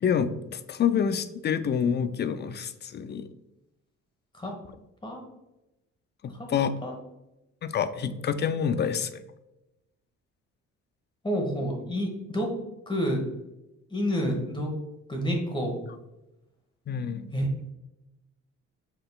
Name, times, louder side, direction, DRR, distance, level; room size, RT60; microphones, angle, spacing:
voice 1, 0.0-3.3 6.2-6.7 7.6-9.2 16.9-17.3, left 7 dB, 35° left, 12 dB, 0.4 m, -27 dB
voice 2, 11.2-12.5 12.9-13.2 13.9-14.7 15.1-15.8 17.3-17.5, equal, 15° left, 1 dB, 1.2 m, -29 dB
5.6 x 3.7 x 2.3 m, 0.94 s
cardioid pair, 90°, 30 cm